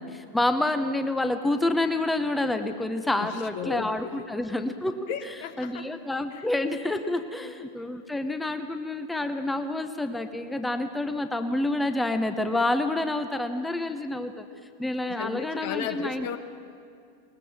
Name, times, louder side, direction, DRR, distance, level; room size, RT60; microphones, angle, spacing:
voice 1, 0.0-5.1 5.6-14.5 14.8-16.3, left 2 dB, 5° left, 8 dB, 0.9 m, -28 dB
voice 2, 3.2-4.3 5.1-5.9 6.3-6.5 7.4-7.5 15.1-16.4, left 7 dB, 50° left, 10 dB, 1.2 m, -35 dB
21.5 x 19.5 x 7.2 m, 2.3 s
figure-of-eight pair, 90°, 0 cm